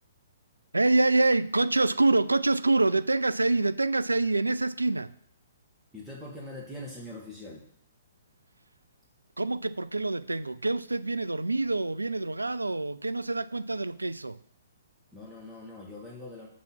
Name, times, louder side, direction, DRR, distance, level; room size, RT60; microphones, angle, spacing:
voice 1, 0.7-5.1 9.4-14.4, right 2 dB, 85° right, 0.3 m, -26 dB
voice 2, 5.9-7.7 15.1-16.5, left 1 dB, 5° right, 1.3 m, -42 dB
5.8 x 4.0 x 5.9 m
figure-of-eight pair, 125°, 0 cm